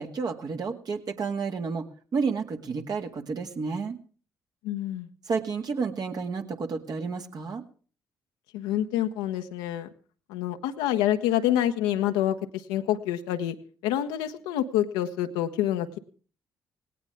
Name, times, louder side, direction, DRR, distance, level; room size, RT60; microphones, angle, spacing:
voice 1, 0.0-1.9 2.1-4.0 5.3-7.6, right 5 dB, 50° right, 4 dB, 2.1 m, -31 dB
voice 2, 4.6-5.1 8.5-9.9 10.3-13.6 13.8-16.0, left 12 dB, 75° left, 7 dB, 1.1 m, -27 dB
18.5 x 17.5 x 3.6 m, 0.41 s
hypercardioid pair, 45°, 9 cm